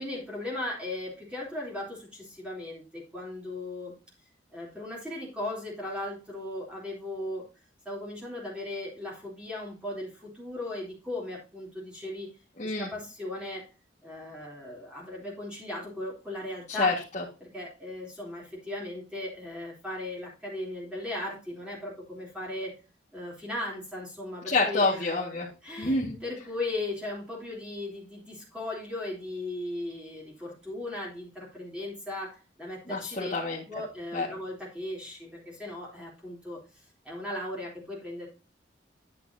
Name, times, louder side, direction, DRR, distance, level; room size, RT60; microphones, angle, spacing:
voice 1, 0.0-3.9 4.5-7.4 7.9-12.3 12.6-13.7 14.0-16.9 17.4-22.7 23.1-25.1 25.6-33.3 33.7-36.6 37.1-38.3, left 1 dB, 5° right, -4 dB, 3.5 m, -37 dB
voice 2, 16.7-17.2 24.4-25.5 25.8-26.2 32.9-33.6 34.1-34.3, left 3 dB, 40° left, -4 dB, 1.9 m, -27 dB
9.9 x 8.2 x 2.8 m, 0.32 s
head